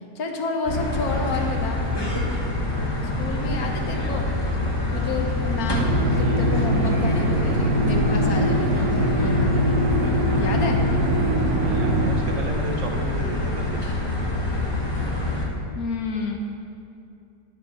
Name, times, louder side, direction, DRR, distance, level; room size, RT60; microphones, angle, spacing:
voice 1, 0.1-1.8 2.3-2.4 3.1-4.3 4.9-10.0 10.4-10.8 15.7-16.4, left 3 dB, 65° left, 2 dB, 1.3 m, -30 dB
sound 1, 0.7-15.5, left 2 dB, 20° left, 0.9 m, -26 dB
sound 2, 5.7-12.1, right 1 dB, 85° right, 1.4 m, -22 dB
voice 2, 11.5-13.8, right 3 dB, 60° right, 2 dB, 0.8 m, -34 dB
9.5 x 6.9 x 4.4 m, 2.5 s
omnidirectional pair, 1.7 m